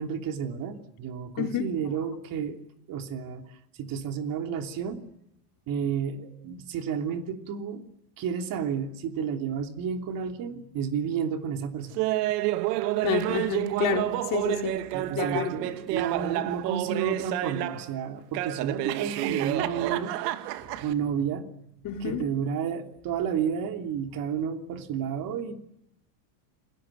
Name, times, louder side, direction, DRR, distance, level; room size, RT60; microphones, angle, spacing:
voice 1, 0.0-2.6 2.9-3.5 3.8-5.0 5.7-7.8 8.2-12.0 14.9-20.1 20.8-21.5 22.0-25.5, right 7 dB, 45° right, 3.1 m, -31 dB
Laughter, 12.0-17.9 18.3-20.9, right 15 dB, 80° right, 2.3 m, -29 dB
voice 2, 13.0-14.8 15.1-15.5 21.8-22.2, left 9 dB, 40° left, 4.1 m, -29 dB
29.5 x 22.0 x 9.2 m
supercardioid pair, 140°, 48 cm